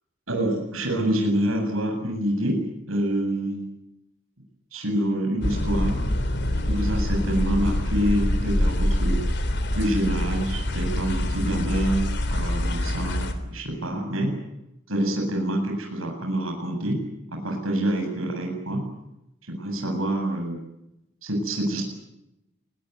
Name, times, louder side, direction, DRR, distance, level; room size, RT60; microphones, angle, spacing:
voice 1, 0.3-3.6 4.7-6.0 6.7-9.2 9.7-14.3 14.9-17.0 17.3-18.8 19.5-20.6 21.2-21.8, right 1 dB, 85° right, 2 dB, 8.0 m, -26 dB
sound 1, 5.4-13.3, left 1 dB, 55° left, 3.5 m, -25 dB
24.5 x 21.5 x 9.7 m, 0.88 s
head